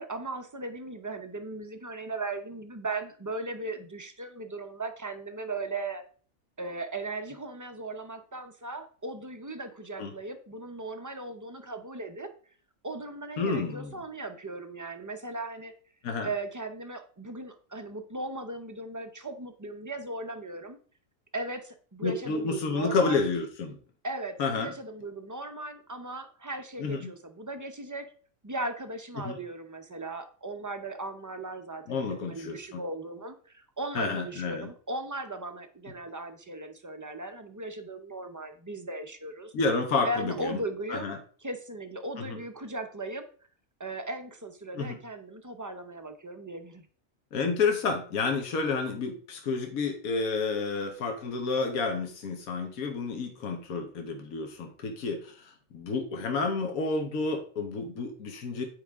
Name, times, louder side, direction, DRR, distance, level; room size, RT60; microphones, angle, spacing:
voice 1, 0.0-6.0 6.6-12.3 12.8-15.7 16.2-20.8 21.3-23.2 24.0-28.1 28.4-39.5 40.0-41.1 41.4-43.2 43.8-46.9, right 2 dB, 25° right, 7 dB, 0.4 m, -37 dB
voice 2, 13.4-14.0 16.0-16.3 22.0-23.8 24.4-24.7 26.8-27.1 29.2-29.4 31.9-32.8 33.9-34.7 39.5-40.6 40.9-41.2 44.7-45.0 47.3-58.6, left 4 dB, 85° left, 4 dB, 1.5 m, -30 dB
9.6 x 4.9 x 3.5 m, 0.43 s
omnidirectional pair, 1.4 m